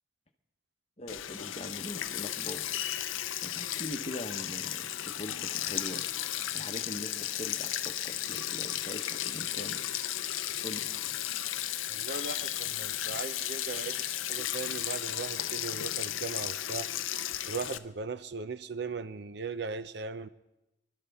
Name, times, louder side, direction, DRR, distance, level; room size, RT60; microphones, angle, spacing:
voice 1, 1.0-2.6 3.1-9.8 10.6-10.9, left 1 dB, 30° left, 6 dB, 0.9 m, -42 dB
Sink (filling or washing), 1.1-17.8, left 12 dB, 90° left, 0.5 m, -34 dB
voice 2, 11.9-16.9 17.5-20.3, right 4 dB, 55° right, 13 dB, 0.5 m, -38 dB
25.0 x 12.0 x 3.5 m, 0.93 s
head